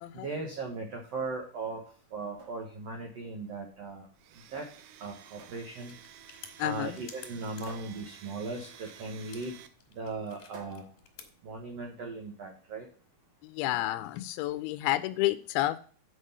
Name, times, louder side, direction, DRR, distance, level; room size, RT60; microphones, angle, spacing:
voice 1, 0.1-1.8 2.1-4.1 4.5-4.7 5.0-5.9 6.6-9.6 9.9-10.8 11.4-12.9, right 3 dB, 65° right, 1 dB, 1.6 m, -38 dB
sound 1, 2.2-12.1, right 4 dB, 50° right, 2.0 m, -55 dB
Domestic sounds home sounds, 4.2-9.7, right 9 dB, 85° right, 1.9 m, -53 dB
sound 2, 5.3-11.3, left 8 dB, 65° left, 2.8 m, -54 dB
voice 2, 6.6-7.0 13.4-15.8, left 16 dB, 85° left, 13 dB, 2.4 m, -30 dB
7.9 x 5.1 x 5.4 m, 0.43 s
omnidirectional pair, 4.4 m